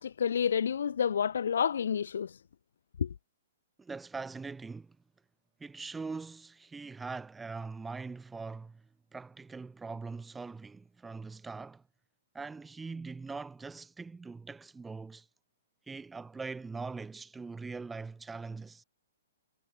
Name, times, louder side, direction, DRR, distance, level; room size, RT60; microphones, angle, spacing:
voice 1, 0.0-2.4 3.0-3.1, left 7 dB, 65° left, 0.8 m, -29 dB
voice 2, 3.8-5.0 5.6-8.8 9.1-11.8 12.3-15.3 15.9-18.8, right 4 dB, 5° right, 1.3 m, -42 dB
hypercardioid pair, 180°, 0 cm